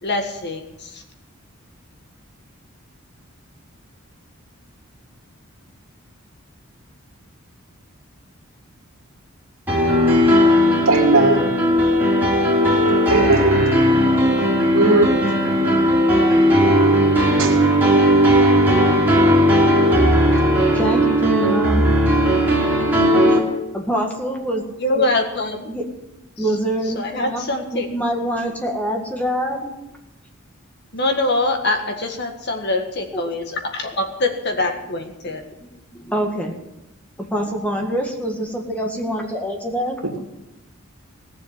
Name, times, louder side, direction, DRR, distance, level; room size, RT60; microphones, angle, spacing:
voice 1, 0.0-1.0 24.8-25.7 26.4-26.5 26.9-27.9 30.9-35.4, left 2 dB, 50° left, 5 dB, 1.7 m, -24 dB
sound 1, 9.7-23.4, equal, 10° right, 3.2 m, -16 dB
voice 2, 10.9-11.5 13.1-13.6 14.7-15.1 17.4-17.5 19.9-20.0, right 3 dB, 75° right, 2 dB, 2.5 m, -17 dB
voice 3, 20.7-21.8 23.3-23.4 23.7-24.6 24.9-25.0 25.7-25.9 26.4-27.4 27.7-29.7 33.1-33.4 35.3-35.4 35.9-36.6 37.2-40.0, right 1 dB, 5° left, 1 dB, 1.8 m, -25 dB
17.0 x 7.5 x 8.3 m, 0.94 s
head